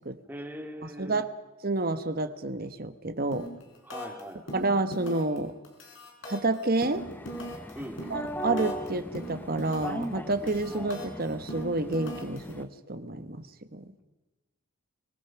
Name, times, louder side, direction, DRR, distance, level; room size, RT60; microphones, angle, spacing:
voice 1, 0.3-1.3 3.8-4.7 7.7-8.2, equal, 10° right, 3 dB, 2.4 m, -41 dB
voice 2, 1.0-1.3 1.6-3.5 4.5-5.5 6.2-7.0 8.1-13.4 13.7-13.8, right 2 dB, 45° right, 10 dB, 1.2 m, -29 dB
sound 1, 3.3-3.6 3.9-4.2 4.5-5.4 5.6-8.9 9.1-10.0 10.3-12.5, equal, 60° left, 4.8 m, -40 dB
sound 2, 7.0-12.6, equal, 10° left, 0.7 m, -38 dB
25.0 x 17.5 x 5.9 m, 1.1 s
head